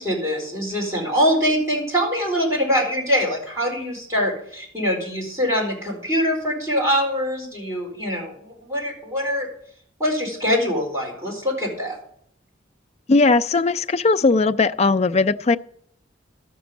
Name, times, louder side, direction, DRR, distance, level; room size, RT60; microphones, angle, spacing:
voice 1, 0.0-9.5 10.0-12.0, equal, 15° right, 4.5 m, -23 dB
voice 2, 13.1-15.6, left 3 dB, 35° left, 0.4 m, -18 dB
12.5 x 6.1 x 7.4 m
head